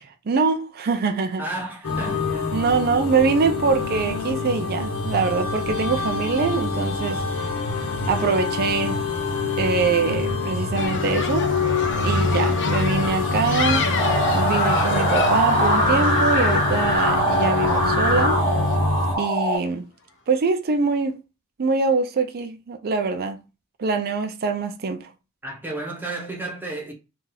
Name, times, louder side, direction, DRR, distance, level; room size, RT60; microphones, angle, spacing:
voice 1, 0.3-1.4 2.5-7.4 8.1-9.0 9.6-11.5 12.0-13.8 14.3-18.4 19.2-19.8 20.3-21.2 21.6-23.4 23.8-25.1, right 4 dB, 45° right, 0.5 m, -23 dB
voice 2, 1.4-2.6 25.4-26.9, right 2 dB, 10° right, 0.9 m, -32 dB
sound 1, 1.8-19.1, left 3 dB, 85° left, 1.2 m, -25 dB
sound 2, 10.8-18.8, left 4 dB, 55° left, 0.6 m, -29 dB
sound 3, 14.0-19.6, right 1 dB, 20° left, 1.1 m, -22 dB
2.7 x 2.4 x 3.9 m
head